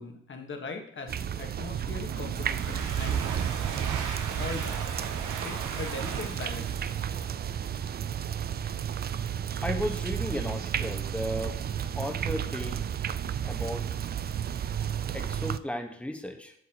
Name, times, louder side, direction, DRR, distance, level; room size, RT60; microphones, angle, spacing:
voice 1, 0.0-3.2 4.4-4.8 5.4-6.9, left 4 dB, 40° left, 4 dB, 1.5 m, -40 dB
sound 1, 1.1-15.6, right 9 dB, 35° right, 0.4 m, -32 dB
Domestic sounds home sounds, 2.1-7.7, right 6 dB, 85° right, 1.3 m, -39 dB
voice 2, 9.6-11.6 12.0-12.8 13.4-13.9 15.1-16.5, left 1 dB, 5° left, 4 dB, 1.2 m, -34 dB
8.1 x 7.2 x 3.0 m, 0.67 s
cardioid pair, 90°, 30 cm